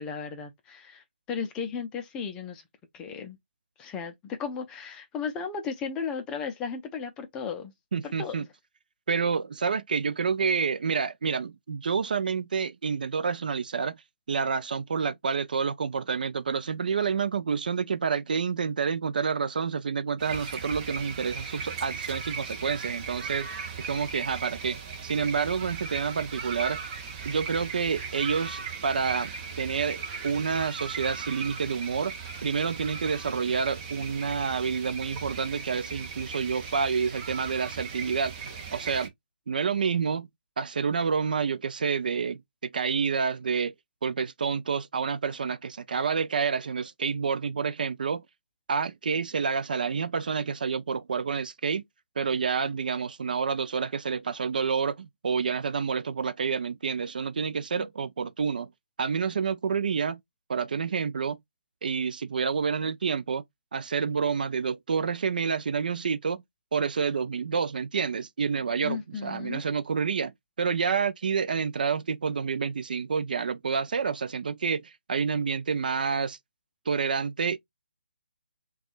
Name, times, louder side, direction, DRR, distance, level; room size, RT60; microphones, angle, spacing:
voice 1, 0.0-2.6 2.9-3.4 3.8-7.7 8.0-8.5 57.8-57.9 68.8-69.6, left 6 dB, 10° left, 0.5 m, -35 dB
voice 2, 7.9-8.5 9.1-14.0 14.3-23.5 23.8-26.8 27.3-29.3 29.6-32.1 32.4-38.3 38.7-39.1 39.5-40.3 40.6-43.7 44.0-48.2 48.7-51.8 52.2-58.7 59.0-60.2 60.5-61.4 61.8-63.4 63.7-66.4 66.7-76.4 76.9-77.6, right 5 dB, 55° right, 0.5 m, -28 dB
sound 1, 20.2-39.1, right 5 dB, 25° right, 0.9 m, -38 dB
5.9 x 2.4 x 2.4 m
figure-of-eight pair, 150°, 6 cm